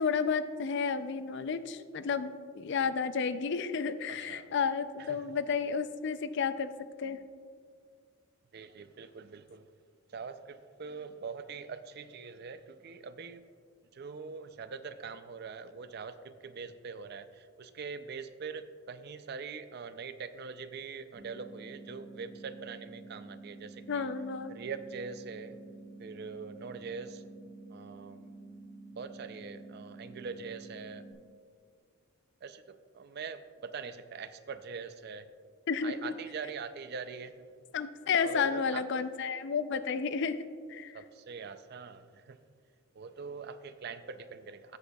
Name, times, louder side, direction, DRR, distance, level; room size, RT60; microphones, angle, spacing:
voice 1, 0.0-6.7 7.0-7.2 23.9-24.6 35.7-36.1 37.7-40.9, left 5 dB, 55° left, 12 dB, 0.4 m, -32 dB
voice 2, 4.1-4.5 5.0-5.3 8.5-9.7 10.1-13.5 13.9-24.1 24.5-25.6 26.0-27.2 27.7-28.3 28.9-31.1 32.4-35.3 35.8-37.5 38.2-39.1 40.9-42.4 43.0-44.8, right 5 dB, 50° right, 11 dB, 0.4 m, -43 dB
sound 1, 21.1-31.1, right 2 dB, 30° right, 2.1 m, -50 dB
14.0 x 8.0 x 2.3 m, 2.1 s
head